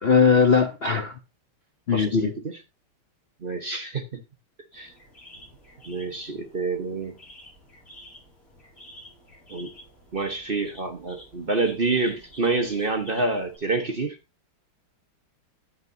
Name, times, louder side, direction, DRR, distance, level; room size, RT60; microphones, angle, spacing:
voice 1, 0.0-1.2 1.9-2.3, left 5 dB, 90° left, 0.5 m, -19 dB
voice 2, 1.9-2.3 3.4-4.0 4.7-4.9 5.9-7.1 9.5-9.7 10.1-14.2, right 3 dB, 40° right, 0.8 m, -27 dB
sound 1, 4.7-13.6, equal, 45° left, 6.9 m, -49 dB
9.9 x 9.6 x 2.6 m
omnidirectional pair, 2.3 m